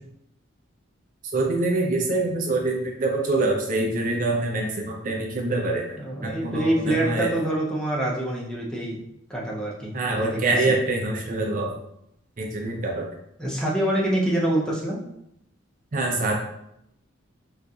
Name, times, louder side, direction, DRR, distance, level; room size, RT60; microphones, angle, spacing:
voice 1, 1.3-6.0 6.2-7.3 9.9-11.7 12.4-13.1 15.9-16.3, right 2 dB, 45° right, 0 dB, 0.5 m, -25 dB
voice 2, 6.0-9.0 9.3-10.3 13.4-15.0, right 1 dB, 5° left, -4 dB, 0.6 m, -25 dB
3.9 x 2.5 x 2.4 m, 0.77 s
head